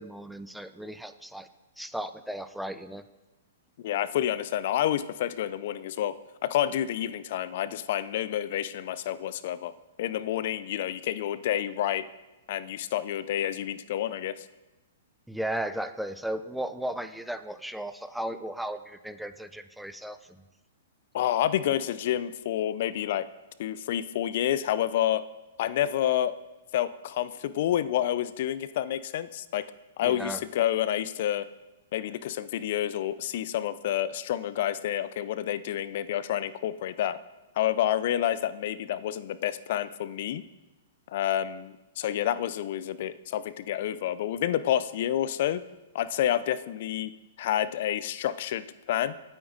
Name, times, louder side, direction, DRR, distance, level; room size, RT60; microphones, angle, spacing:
voice 1, 0.0-1.5 1.8-3.0 15.3-20.4 30.0-30.4, right 1 dB, ahead, 10 dB, 0.6 m, -35 dB
voice 2, 3.8-6.2 6.4-9.7 10.0-12.1 12.5-14.5 21.1-23.3 23.6-25.2 25.6-26.3 26.7-29.6 30.0-31.5 31.9-37.2 37.6-40.4 41.1-45.6 45.9-47.1 47.4-49.1, left 11 dB, 55° left, 16 dB, 0.6 m, -29 dB
26.0 x 8.9 x 4.0 m, 1.1 s
hypercardioid pair, 115°, 0 cm